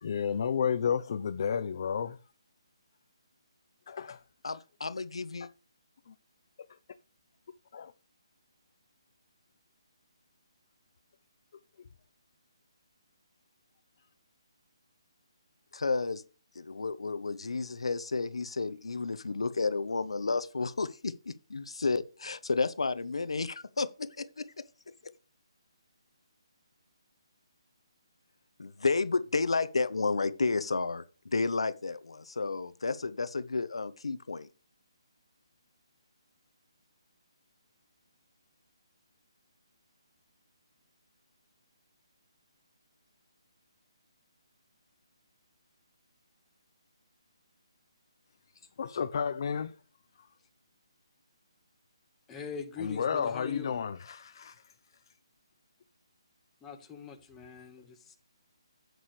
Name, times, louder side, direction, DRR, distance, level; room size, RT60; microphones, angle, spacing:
voice 1, 0.0-2.2 3.9-4.2 6.1-6.2 7.7-7.9 48.8-49.7 52.8-54.7, left 7 dB, 45° left, 0.6 m, -31 dB
voice 2, 4.4-5.5 15.7-16.2 16.5-24.5 28.6-34.5, left 4 dB, 85° left, 0.9 m, -31 dB
voice 3, 52.3-53.7 56.6-58.1, left 6 dB, 10° left, 1.4 m, -42 dB
11.0 x 8.0 x 3.3 m
hypercardioid pair, 165°, 3 cm